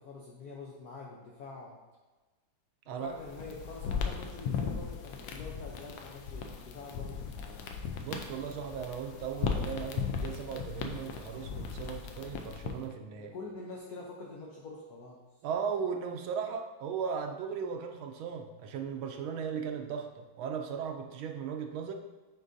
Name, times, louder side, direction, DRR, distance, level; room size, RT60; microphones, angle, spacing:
voice 1, 0.0-1.8 2.9-7.6 13.1-15.2, left 3 dB, 60° left, -2 dB, 1.1 m, -46 dB
sound 1, 3.1-12.9, left 6 dB, 80° left, 1.4 m, -37 dB
voice 2, 8.0-13.4 15.4-21.9, right 6 dB, 90° right, 5 dB, 1.5 m, -37 dB
9.9 x 3.9 x 2.6 m, 1.2 s
omnidirectional pair, 2.2 m